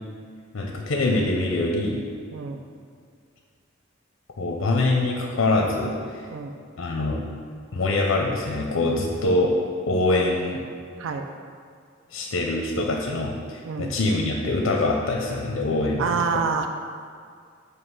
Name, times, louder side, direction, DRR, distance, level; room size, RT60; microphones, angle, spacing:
voice 1, 0.5-2.0 4.4-6.3 6.8-7.2 7.7-9.6 9.9-10.6 12.1-16.3, left 2 dB, 75° left, 0 dB, 0.6 m, -24 dB
voice 2, 13.7-14.0 16.0-16.7, right 5 dB, 75° right, 6 dB, 0.4 m, -27 dB
7.5 x 2.8 x 4.7 m, 2.1 s
head